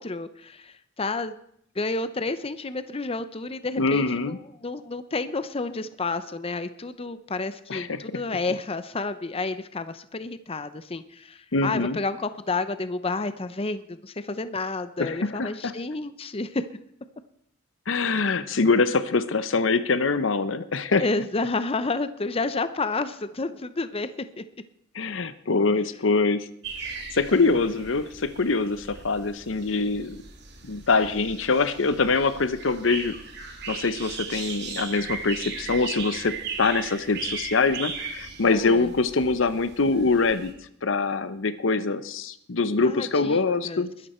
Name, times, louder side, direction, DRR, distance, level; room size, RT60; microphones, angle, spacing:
voice 1, 0.0-1.3 1.8-16.6 21.0-24.4 27.3-27.5 38.5-38.9 42.8-43.9, left 3 dB, 30° left, 12 dB, 0.7 m, -30 dB
voice 2, 3.8-4.4 7.7-8.0 11.5-12.0 15.0-15.7 17.9-21.0 24.9-26.5 26.8-30.2 30.6-33.2 33.7-40.5 40.8-43.9, left 3 dB, 75° left, 13 dB, 0.9 m, -24 dB
sound 1, 26.6-40.5, right 5 dB, 60° right, 2.8 m, -38 dB
21.0 x 12.0 x 4.4 m, 0.71 s
head